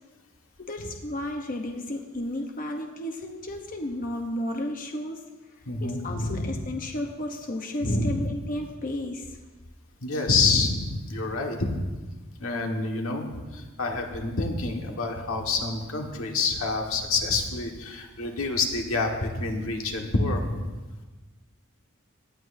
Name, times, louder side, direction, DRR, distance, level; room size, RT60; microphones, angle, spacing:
voice 1, 0.6-5.3 5.8-9.4, left 1 dB, 40° left, 3 dB, 0.9 m, -33 dB
voice 2, 5.7-6.6 7.8-8.3 10.0-11.7 12.4-20.6, left 3 dB, 90° left, 2 dB, 1.5 m, -27 dB
18.0 x 10.5 x 2.6 m, 1.2 s
head